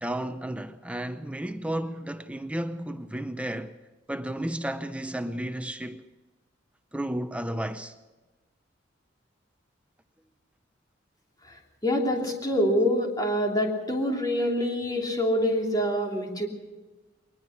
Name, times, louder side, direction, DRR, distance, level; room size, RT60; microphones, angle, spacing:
voice 1, 0.0-3.7 4.1-6.0 6.9-7.9, right 1 dB, 5° right, 0.6 m, -33 dB
voice 2, 11.8-16.5, equal, 20° left, 3.1 m, -26 dB
22.0 x 20.0 x 5.9 m
head